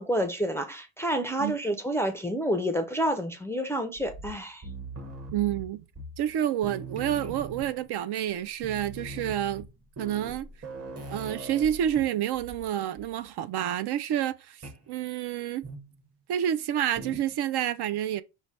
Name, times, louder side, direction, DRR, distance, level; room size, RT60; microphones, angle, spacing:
voice 1, 0.0-4.7, equal, 5° left, 0.4 m, -29 dB
sound 1, 4.0-6.4 6.6-7.9 8.3-8.4 8.6-12.7 13.0-13.3 14.6-14.9 15.6-16.0 17.0-17.4, right 2 dB, 30° right, 1.0 m, -41 dB
voice 2, 5.3-5.8 6.2-9.7 10.0-10.5 11.1-14.6 14.9-15.6 16.3-18.2, right 11 dB, 60° right, 0.5 m, -29 dB
5.4 x 2.1 x 4.6 m
cardioid pair, 150°, 45 cm